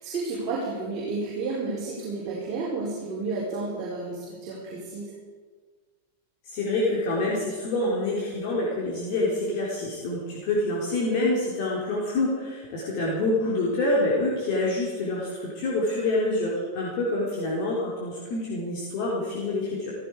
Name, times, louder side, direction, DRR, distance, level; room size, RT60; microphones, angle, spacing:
voice 1, 0.0-5.2, right 3 dB, 35° right, -7 dB, 4.5 m, -31 dB
voice 2, 6.5-19.9, left 2 dB, 45° left, -5 dB, 4.0 m, -27 dB
16.0 x 15.0 x 5.0 m, 1.5 s
figure-of-eight pair, 90°, 0 cm